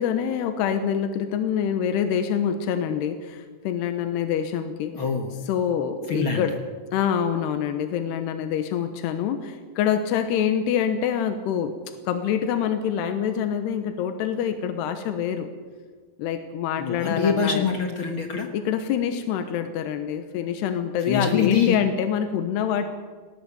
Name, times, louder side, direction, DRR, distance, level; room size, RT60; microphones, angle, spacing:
voice 1, 0.0-4.9 5.5-6.5 6.9-11.7 12.1-15.5 16.2-17.7 18.5-22.8, left 8 dB, 90° left, 8 dB, 3.2 m, -26 dB
voice 2, 4.9-5.4 6.1-6.5 16.8-18.5 21.0-21.8, left 6 dB, 70° left, 4 dB, 1.2 m, -24 dB
19.0 x 18.0 x 8.7 m, 1.5 s
omnidirectional pair, 4.7 m